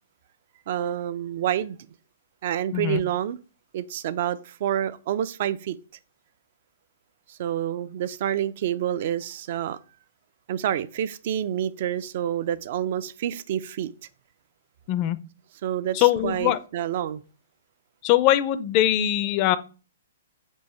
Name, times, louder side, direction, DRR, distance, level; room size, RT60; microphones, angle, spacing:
voice 1, 0.7-1.8 2.4-3.4 3.7-5.8 7.3-9.8 10.5-13.9 15.6-17.2, right 10 dB, 55° right, 0.3 m, -28 dB
voice 2, 15.9-16.6 18.0-19.6, left 13 dB, 35° left, 0.4 m, -21 dB
4.5 x 2.6 x 4.2 m
hypercardioid pair, 135°, 0 cm